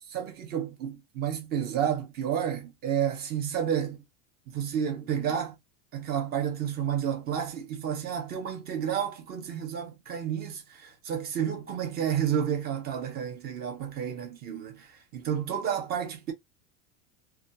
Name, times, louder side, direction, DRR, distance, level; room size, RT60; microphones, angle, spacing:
voice 1, 0.1-4.0 4.5-5.5 5.9-14.9 15.1-16.3, right 9 dB, 25° right, 0.6 m, -31 dB
2.4 x 2.3 x 2.6 m
supercardioid pair, 160°, 39 cm